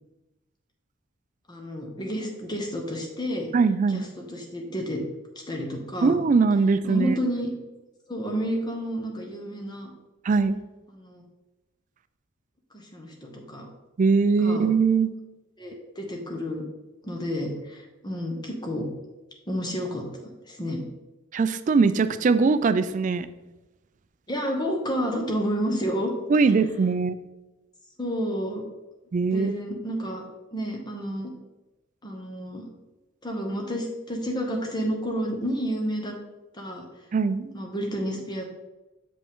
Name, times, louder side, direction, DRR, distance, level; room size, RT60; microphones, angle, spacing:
voice 1, 1.5-3.5 3.9-5.0 5.5-6.2 6.8-7.5 8.1-9.9 10.9-11.2 12.7-13.7 14.4-14.7 15.6-16.6 17.0-18.9 19.5-20.0 20.5-20.8 24.3-26.1 26.6-26.7 28.0-28.6 29.3-30.2 30.5-31.3 32.0-32.7 33.2-36.1 36.5-36.8 37.5-38.4, equal, 20° left, 1 dB, 1.0 m, -30 dB
voice 2, 3.5-4.0 6.0-7.2 10.2-10.6 14.0-15.1 21.3-23.3 26.3-27.2 29.1-29.5 37.1-37.5, right 4 dB, 40° right, 13 dB, 0.3 m, -21 dB
6.6 x 5.1 x 3.6 m, 1.1 s
head